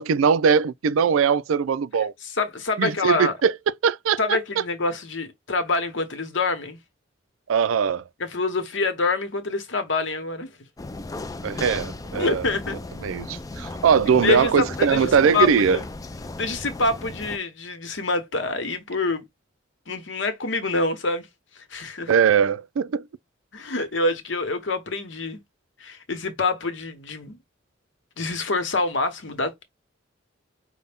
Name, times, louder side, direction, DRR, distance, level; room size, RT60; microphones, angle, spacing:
voice 1, 0.0-2.1 2.8-3.5 3.8-4.6 7.5-8.0 11.4-12.4 13.0-15.8 22.1-23.1, right 7 dB, 90° right, 0.4 m, -21 dB
voice 2, 2.4-3.3 4.2-6.8 8.2-10.5 12.2-12.8 14.2-15.8 16.4-19.2 19.9-21.3 21.6-22.1 23.5-25.4 25.8-27.4 28.2-29.6, left 3 dB, 65° left, 1.1 m, -26 dB
sound 1, 10.8-17.4, left 2 dB, 20° left, 0.3 m, -35 dB
5.4 x 2.2 x 3.5 m
head